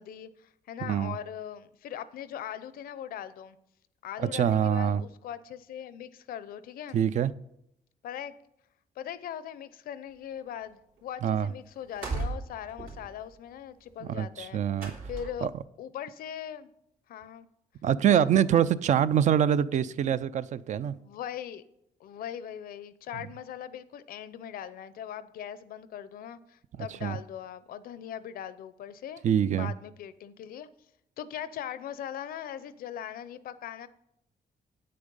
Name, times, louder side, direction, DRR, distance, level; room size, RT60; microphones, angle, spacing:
voice 1, 0.0-3.6 4.0-7.0 8.0-8.3 9.0-14.6 15.1-15.5 15.8-16.7 17.1-17.5 18.1-18.3 19.9-20.0 20.9-21.6 22.0-29.2 29.6-30.7 31.2-33.9, left 10 dB, 80° left, 15 dB, 0.6 m, -40 dB
voice 2, 0.8-1.1 4.2-5.0 6.9-7.3 11.2-11.5 14.1-14.9 15.4-15.5 17.8-21.0 27.0-27.2 29.2-29.7, right 9 dB, 55° right, 16 dB, 0.4 m, -25 dB
sound 1, 11.0-11.1 11.2-11.5 11.8-15.6, right 3 dB, 75° right, 3.0 m, -37 dB
8.9 x 8.5 x 5.3 m, 0.79 s
cardioid pair, 135°, 15 cm